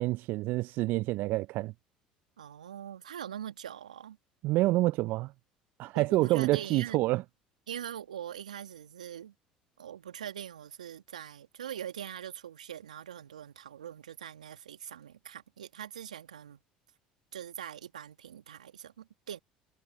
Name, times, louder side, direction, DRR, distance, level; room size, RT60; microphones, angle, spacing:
voice 1, 0.0-1.7 4.4-5.3 5.8-7.2, right 19 dB, 60° right, 0.7 m, -27 dB
voice 2, 2.4-4.2 5.9-7.0 7.7-9.3 9.8-16.6 17.3-19.4, right 9 dB, 85° right, 2.0 m, -42 dB
hypercardioid pair, 65°, 4 cm